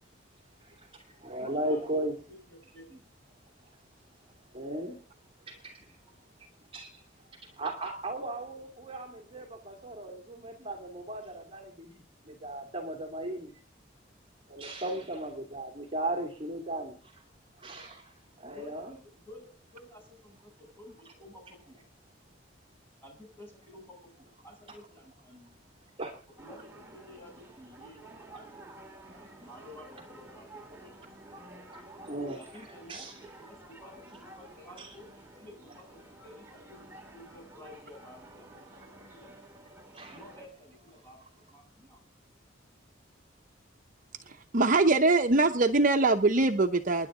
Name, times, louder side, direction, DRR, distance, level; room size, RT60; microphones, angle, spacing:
voice 1, 0.6-2.1 4.5-5.0 5.5-5.9 6.7-7.0 7.4-13.5 14.5-17.1 17.6-19.0 26.0-26.1 31.7-32.4 32.9-33.2 34.8-34.9 39.9-40.2, right 1 dB, 30° right, 2 dB, 2.5 m, -37 dB
voice 2, 1.4-3.1 15.0-15.5 18.4-21.8 23.0-25.5 26.4-28.7 29.1-31.0 32.4-33.1 33.4-35.1 35.4-39.3 40.1-42.0, left 1 dB, 10° left, 0 dB, 7.1 m, -52 dB
sound 1, 26.4-40.5, right 2 dB, 15° right, 2.4 m, -51 dB
voice 3, 44.3-47.1, right 3 dB, 45° right, 5 dB, 0.9 m, -23 dB
29.0 x 10.5 x 3.8 m, 0.38 s
head